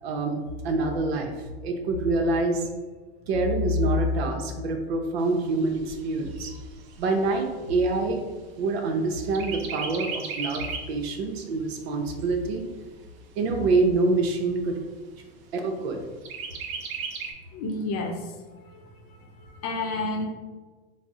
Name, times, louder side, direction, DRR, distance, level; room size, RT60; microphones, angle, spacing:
voice 1, 0.0-2.7 3.3-6.6 7.0-8.2 8.6-12.7 13.4-14.8 15.5-16.0, right 2 dB, 75° right, 3 dB, 0.7 m, -26 dB
Chirp tweet, 5.2-8.9 9.3-11.0 11.4-11.5 11.9-12.9 13.5-13.6 13.9-14.0 14.5-15.0 16.2-17.3, right 5 dB, 40° right, 0.5 m, -37 dB
voice 2, 17.5-18.3 18.7-18.8 19.1-20.3, left 2 dB, 45° left, 2 dB, 0.7 m, -31 dB
3.8 x 2.1 x 3.6 m, 1.3 s
hypercardioid pair, 120°, 32 cm